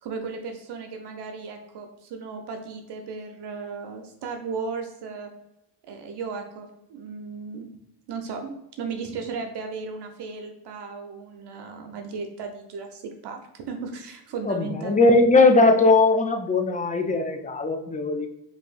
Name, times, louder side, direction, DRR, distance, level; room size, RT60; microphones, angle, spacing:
voice 1, 0.0-5.3 5.8-7.7 8.1-15.3, right 5 dB, 65° right, 4 dB, 0.7 m, -35 dB
voice 2, 14.4-18.3, left 3 dB, 20° left, 5 dB, 0.5 m, -19 dB
5.0 x 2.7 x 2.4 m, 0.87 s
cardioid pair, 85°, 44 cm